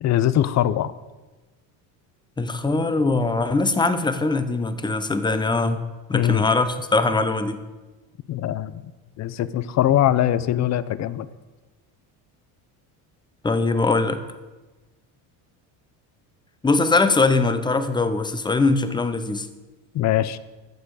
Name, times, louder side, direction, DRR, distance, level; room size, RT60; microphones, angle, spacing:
voice 1, 0.0-0.9 6.1-6.5 8.3-8.8 9.2-11.3 19.9-20.4, left 12 dB, 40° left, 16 dB, 0.6 m, -22 dB
voice 2, 2.4-5.8 6.1-7.6 13.4-14.2 16.6-19.5, left 3 dB, 10° left, 10 dB, 0.7 m, -21 dB
14.5 x 6.9 x 4.8 m, 1.2 s
cardioid pair, 115°, 41 cm